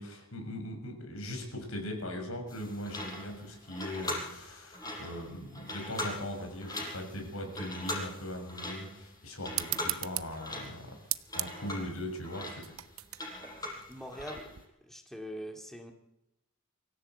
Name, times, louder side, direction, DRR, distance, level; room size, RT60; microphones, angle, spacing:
voice 1, 0.0-10.9 11.3-12.7, left 1 dB, 85° left, 3 dB, 6.4 m, -40 dB
sound 1, 2.5-14.6, left 1 dB, 15° left, 5.3 m, -41 dB
sound 2, 9.5-14.6, right 16 dB, 80° right, 0.8 m, -39 dB
voice 2, 13.9-14.5 14.8-15.9, equal, ahead, 3 dB, 2.1 m, -42 dB
24.5 x 14.5 x 8.1 m, 0.90 s
head